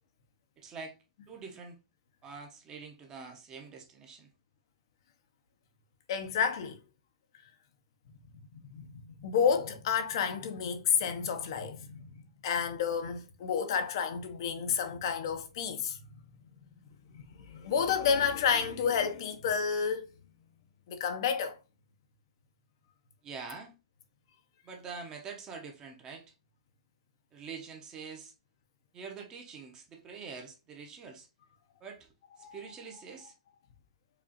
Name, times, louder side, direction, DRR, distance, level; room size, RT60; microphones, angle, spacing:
voice 1, 0.6-1.0 1.3-1.8 2.2-4.3 23.2-23.8 24.6-26.3 27.3-28.3 28.9-31.3 31.8-33.3, right 5 dB, 20° right, 0.8 m, -45 dB
voice 2, 6.1-6.8 8.1-12.1 12.4-16.0 17.1-20.1 20.9-21.6 32.4-32.6, left 7 dB, 55° left, 0.6 m, -30 dB
4.8 x 2.4 x 2.8 m
hypercardioid pair, 150°, 3 cm